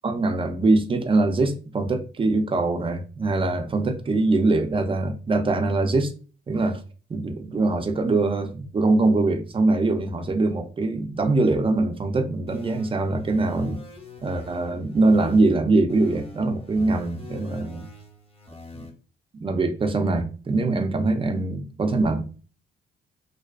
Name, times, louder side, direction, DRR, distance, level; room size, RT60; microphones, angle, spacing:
voice 1, 0.0-6.1 6.5-6.8 7.1-13.8 14.2-17.9 18.7-18.9 19.4-22.2, right 2 dB, 25° right, 0.4 m, -23 dB
sound 1, 12.5-15.5 15.9-18.9, left 2 dB, 30° left, 0.8 m, -42 dB
2.3 x 2.3 x 2.2 m
cardioid pair, 90°, 20 cm